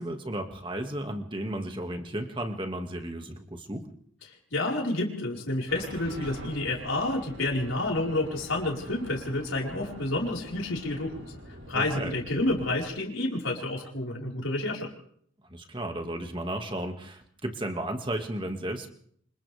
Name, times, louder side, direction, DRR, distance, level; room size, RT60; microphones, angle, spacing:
voice 1, 0.0-3.9 11.7-12.1 15.5-18.9, right 1 dB, 25° right, 4 dB, 2.1 m, -34 dB
voice 2, 4.5-14.9, left 2 dB, 80° left, -2 dB, 5.0 m, -29 dB
sound 1, 5.7-12.9, right 1 dB, 70° right, 6.6 m, -45 dB
28.5 x 26.0 x 3.6 m, 0.63 s
head